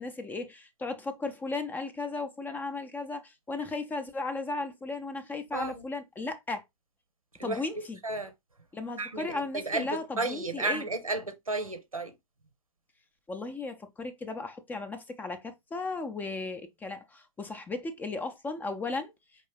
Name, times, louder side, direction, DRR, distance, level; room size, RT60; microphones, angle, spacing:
voice 1, 0.0-6.6 7.4-8.0 8.7-10.9 13.3-19.1, left 3 dB, 10° left, 0.5 m, -36 dB
voice 2, 5.5-5.8 7.4-7.6 8.0-8.3 9.0-12.1, right 3 dB, 90° right, 0.8 m, -33 dB
4.5 x 2.8 x 3.1 m
figure-of-eight pair, 105°, 17 cm